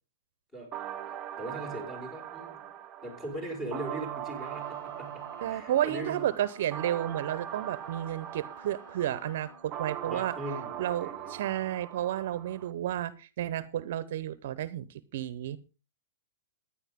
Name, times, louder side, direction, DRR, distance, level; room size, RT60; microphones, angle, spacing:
sound 1, 0.7-12.7, right 11 dB, 30° right, 0.8 m, -41 dB
voice 1, 1.4-2.7 3.0-6.2 10.1-11.4, right 1 dB, 15° left, 3 dB, 5.5 m, -40 dB
Bowed string instrument, 4.3-9.8, left 5 dB, 50° left, 1.5 m, -55 dB
voice 2, 5.4-10.3 10.8-15.6, right 12 dB, 60° right, 17 dB, 0.8 m, -32 dB
15.0 x 10.0 x 3.7 m, 0.31 s
hypercardioid pair, 130°, 0 cm